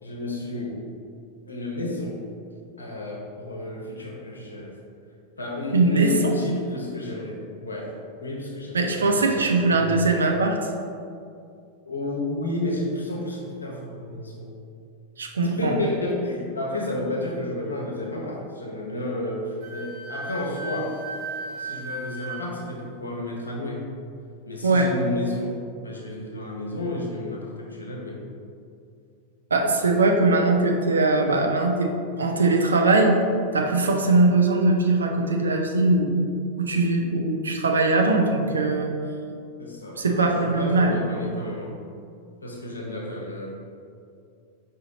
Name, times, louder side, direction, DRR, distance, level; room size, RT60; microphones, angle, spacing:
voice 1, 0.0-0.8 1.5-2.2 2.8-4.7 5.4-7.9 8.2-9.7 11.9-14.6 15.4-20.9 21.5-23.8 24.5-28.2 39.6-41.8 42.4-43.5, left 1 dB, 75° left, -2 dB, 0.7 m, -31 dB
voice 2, 5.7-6.3 8.7-10.6 15.2-15.8 24.6-24.9 29.5-33.2 33.5-36.3 36.6-38.9 40.0-41.0, right 2 dB, 70° right, 2 dB, 0.4 m, -21 dB
Wind instrument woodwind instrument, 19.6-22.4, right 2 dB, 45° right, 0.9 m, -35 dB
5.0 x 2.7 x 3.9 m, 2.4 s
figure-of-eight pair, 90°, 0 cm